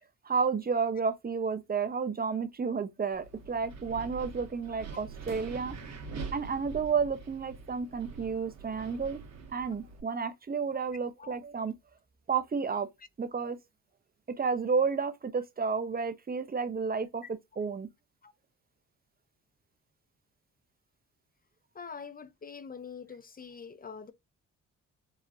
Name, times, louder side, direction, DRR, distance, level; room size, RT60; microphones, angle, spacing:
voice 1, 0.2-5.8 6.3-9.2 9.5-11.7 12.3-12.9 13.2-13.6 14.4-17.2 17.6-17.9, right 5 dB, 30° right, 0.9 m, -31 dB
Wind, 3.1-10.0, right 4 dB, 55° right, 1.7 m, -44 dB
voice 2, 21.7-24.1, left 6 dB, 25° left, 0.7 m, -44 dB
4.8 x 2.9 x 2.7 m
cardioid pair, 90°, 32 cm